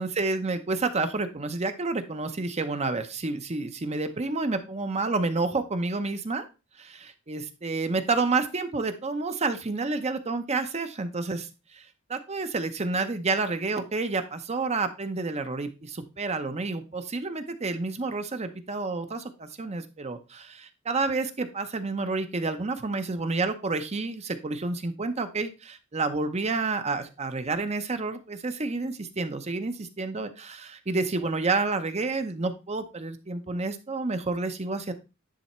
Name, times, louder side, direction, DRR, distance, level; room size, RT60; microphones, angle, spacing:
voice 1, 0.0-6.5 6.8-34.9, right 3 dB, 30° right, 9 dB, 0.7 m, -29 dB
10.0 x 3.5 x 4.3 m, 0.29 s
head